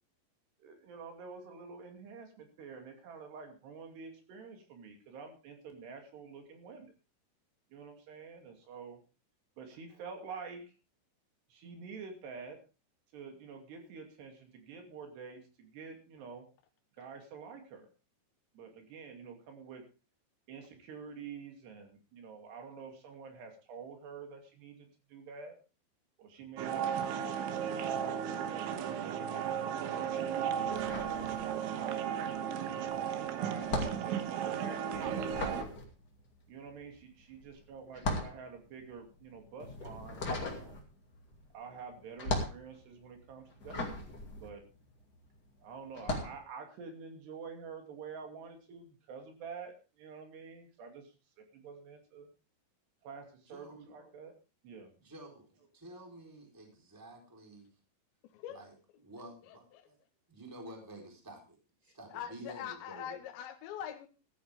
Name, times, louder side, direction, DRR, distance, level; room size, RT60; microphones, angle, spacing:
voice 1, 0.6-6.9 7.7-9.0 9.6-10.7 11.5-12.6 13.1-16.5 17.0-17.9 18.5-19.8 20.5-25.6 26.2-28.4 29.0-32.0 33.1-35.8 36.5-40.8 41.5-44.0 44.4-44.6 45.6-52.3 53.0-54.3 54.6-54.9, right 5 dB, 70° right, 4 dB, 4.6 m, -48 dB
sound 1, 26.6-35.6, right 8 dB, 90° right, 3.6 m, -35 dB
sound 2, 30.7-31.9 32.2-45.3 45.9-46.4, left 2 dB, 30° left, 2.1 m, -38 dB
voice 2, 53.5-53.8 55.0-55.5 55.7-57.7 58.5-58.7 59.0-60.0 60.3-61.6 61.8-63.2, right 1 dB, 5° right, 1 dB, 3.3 m, -50 dB
voice 3, 58.2-58.6 59.4-59.9 61.9-64.1, left 10 dB, 80° left, 6 dB, 3.3 m, -43 dB
14.5 x 14.0 x 3.5 m, 0.32 s
omnidirectional pair, 5.2 m